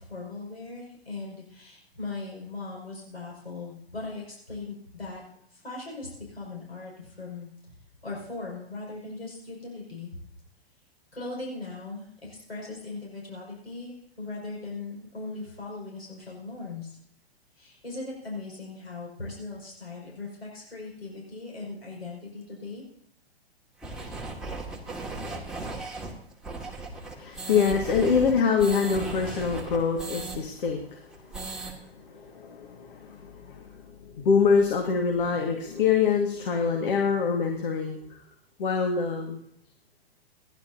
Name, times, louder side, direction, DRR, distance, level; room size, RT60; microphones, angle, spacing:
voice 1, 0.0-5.2 5.5-7.5 8.0-10.1 11.1-17.0 17.5-22.8, left 3 dB, 85° left, -3 dB, 5.8 m, -39 dB
sound 1, 23.8-30.4 30.7-30.8 31.1-31.7, right 3 dB, ahead, 2.1 m, -36 dB
voice 2, 27.0-31.0 32.0-38.0 38.6-39.4, left 6 dB, 55° left, 2 dB, 2.0 m, -25 dB
26.0 x 11.5 x 2.8 m, 0.67 s
figure-of-eight pair, 110°, 31 cm